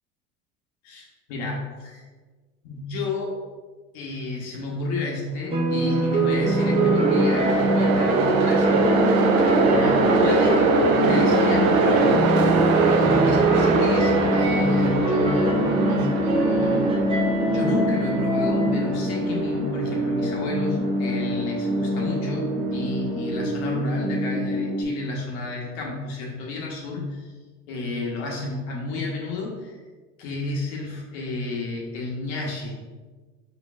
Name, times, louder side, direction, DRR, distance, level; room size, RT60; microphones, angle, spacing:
voice 1, 0.8-2.1 2.6-3.4 3.9-9.1 9.6-12.2 12.8-17.1 17.4-27.3 27.7-29.8 30.2-32.8, left 3 dB, 60° left, -2 dB, 1.2 m, -31 dB
sound 1, 5.5-18.8, right 2 dB, 15° right, 0.7 m, -23 dB
Train, 5.6-22.8, right 4 dB, 75° right, 0.7 m, -25 dB
sound 2, 6.4-24.8, equal, ahead, 1.1 m, -26 dB
5.0 x 4.0 x 2.5 m, 1.4 s
hypercardioid pair, 80°, 41 cm